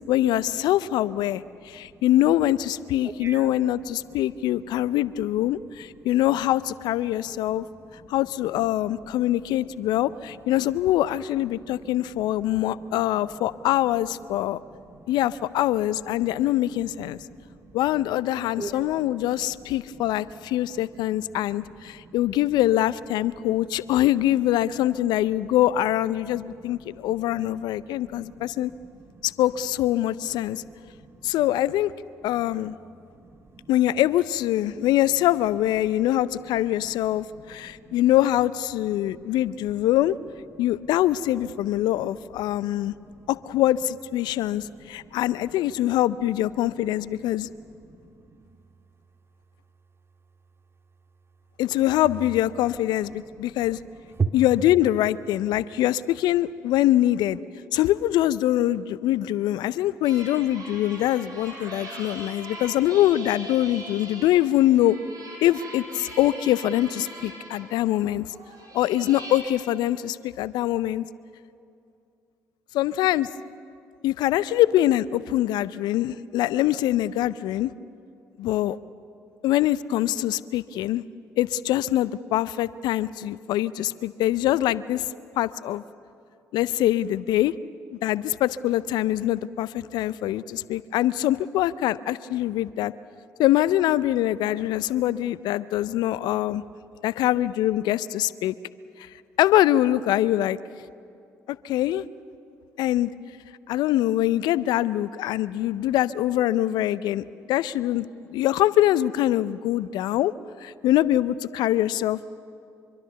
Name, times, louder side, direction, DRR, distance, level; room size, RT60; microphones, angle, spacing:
voice 1, 0.1-7.7 8.1-14.6 15.1-17.2 17.7-28.7 29.2-30.6 31.2-31.9 32.2-32.8 33.7-40.2 40.6-42.9 43.3-47.5 51.6-53.8 54.3-57.4 57.7-65.0 65.4-68.3 68.7-71.0 72.7-73.3 74.0-77.7 78.4-78.8 79.4-81.0 81.4-85.0 85.4-85.8 86.5-87.5 87.9-92.9 93.4-96.6 97.0-98.5 99.0-99.1 99.4-100.6 101.5-102.0 102.8-103.1 103.7-110.3 110.6-112.3, left 13 dB, 70° left, 18 dB, 0.5 m, -24 dB
voice 2, 3.0-3.5 5.9-6.0 7.2-8.2 9.2-9.6 11.7-12.2 12.4-13.0 14.5-15.1 16.2-16.3 17.1-17.8 18.6-19.2 19.9-20.2 20.6-21.0 21.5-22.2 23.4-23.7 25.5-25.6 26.2-26.5 26.9-29.2 30.5-30.6 30.9-31.4 32.5-32.7 33.1-33.7 36.8-36.9 37.2-38.0 39.0-39.4 40.5-40.9 42.5-43.3 44.2-45.2 47.6-48.4 53.5-53.6 54.2-54.3, right 5 dB, 35° right, 6 dB, 2.2 m, -40 dB
sound 1, 60.0-69.4, right 1 dB, 50° right, 7.0 m, -41 dB
25.0 x 24.0 x 6.9 m, 2.5 s
hypercardioid pair, 45°, 8 cm